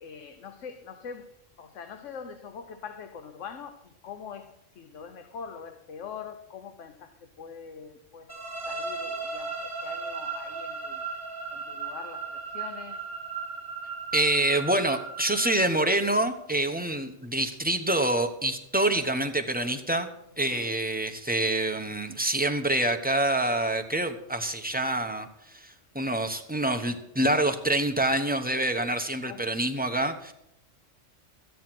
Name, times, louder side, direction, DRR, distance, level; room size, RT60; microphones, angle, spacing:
voice 1, 0.0-1.3 1.6-4.5 4.8-7.1 7.4-8.3 8.7-11.0 11.5-13.0 20.4-20.7 29.2-29.6, left 6 dB, 75° left, 8 dB, 1.2 m, -43 dB
sound 1, 8.3-16.1, right 4 dB, 40° left, 3.9 m, -36 dB
voice 2, 14.1-20.1 20.4-30.3, right 1 dB, 10° right, 5 dB, 0.8 m, -26 dB
13.5 x 9.6 x 6.0 m, 0.80 s
omnidirectional pair, 1.3 m